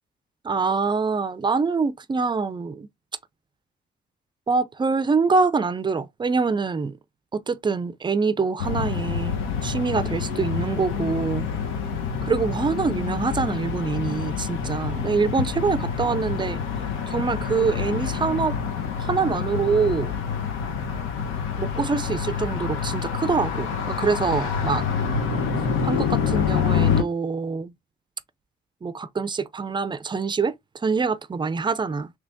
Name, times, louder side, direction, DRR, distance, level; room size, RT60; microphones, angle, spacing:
voice 1, 0.4-2.9 4.5-7.0 7.3-11.5 12.2-16.6 17.1-18.6 19.0-20.1 21.6-24.8 25.8-27.7 28.8-32.1, right 4 dB, 25° right, 0.4 m, -25 dB
sound 1, 8.6-27.0, left 6 dB, 85° left, 1.0 m, -27 dB
3.3 x 3.0 x 2.6 m
cardioid pair, 90°, 20 cm